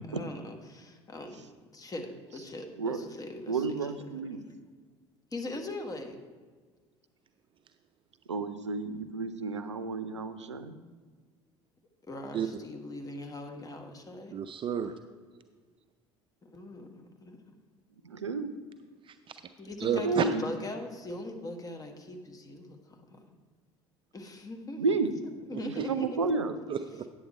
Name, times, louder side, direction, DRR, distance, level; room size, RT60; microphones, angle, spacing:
voice 1, 0.1-3.7 4.3-4.4 5.3-6.2 12.0-14.3 16.4-17.6 19.6-23.3 24.1-25.0 25.5-26.2, left 2 dB, 25° left, 5 dB, 1.4 m, -41 dB
voice 2, 3.5-4.4 8.3-10.8 18.0-18.5 19.9-20.4 24.8-25.1 25.6-26.5, right 4 dB, 90° right, 11 dB, 0.5 m, -31 dB
voice 3, 14.3-14.9 19.1-19.4 19.8-20.3 25.5-25.9 26.7-27.1, right 8 dB, 35° right, 9 dB, 0.5 m, -31 dB
9.3 x 7.7 x 4.3 m, 1.5 s
figure-of-eight pair, 65°, 15 cm